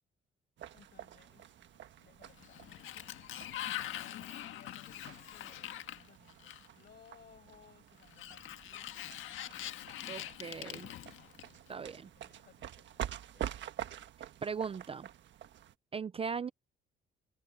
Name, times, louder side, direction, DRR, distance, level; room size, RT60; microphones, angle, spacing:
sound 1, 0.6-15.7, right 10 dB, 70° right, 1.4 m, -47 dB
voice 1, 0.7-1.5 2.0-3.1 4.0-9.7 10.0-10.6 11.0-13.0 13.3-13.6, left 8 dB, 55° left, 6.6 m, -63 dB
Sliding door, 2.3-6.9 8.0-11.7, left 12 dB, 80° left, 1.6 m, -43 dB
voice 2, 10.1-10.9 11.7-12.1 14.4-15.1 15.9-16.5, right 6 dB, 30° right, 0.4 m, -38 dB
cardioid pair, 90°, 20 cm